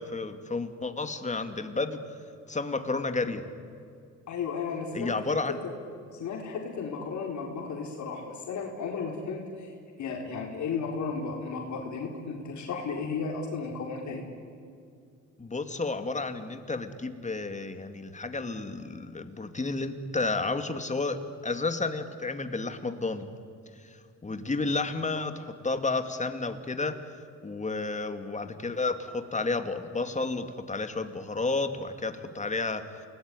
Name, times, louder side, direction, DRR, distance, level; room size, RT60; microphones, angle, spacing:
voice 1, 0.0-2.0 2.5-3.4 4.9-5.6 15.4-23.3 23.9-24.0 24.2-27.0 27.4-32.8, left 3 dB, 25° left, 8 dB, 2.5 m, -31 dB
voice 2, 4.3-5.3 5.6-5.7 6.2-9.7 10.0-14.2, left 5 dB, 70° left, 1 dB, 4.3 m, -34 dB
28.5 x 20.0 x 9.9 m, 2.4 s
cardioid pair, 90°, 30 cm